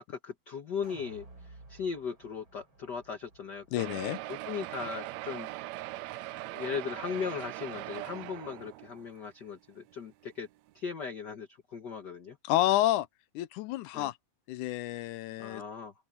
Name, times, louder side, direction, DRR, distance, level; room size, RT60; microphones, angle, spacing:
voice 1, 0.0-4.0 4.3-5.8 6.5-10.5 10.7-12.4 13.9-14.1 15.4-15.9, left 6 dB, 50° left, 1.3 m, -38 dB
sound 1, 0.8-7.0 7.4-7.5, right 2 dB, 35° right, 6.6 m, -57 dB
voice 2, 3.7-4.2 12.4-13.1 13.4-14.1 14.5-15.6, left 15 dB, 75° left, 2.0 m, -29 dB
sound 2, 3.8-9.2 9.9-10.0 10.2-10.3 10.7-10.8, right 17 dB, 85° right, 1.6 m, -40 dB
open air
omnidirectional pair, 3.8 m